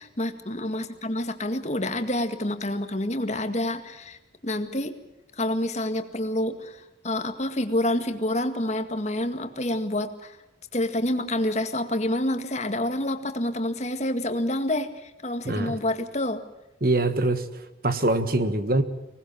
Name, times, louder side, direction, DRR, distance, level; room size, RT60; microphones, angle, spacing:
voice 1, 0.0-5.0 5.4-10.4 10.7-16.4, left 1 dB, 35° left, 7 dB, 2.0 m, -28 dB
voice 2, 15.4-15.8 16.8-18.8, right 2 dB, 50° right, 10 dB, 1.6 m, -24 dB
25.5 x 19.5 x 7.6 m, 0.95 s
head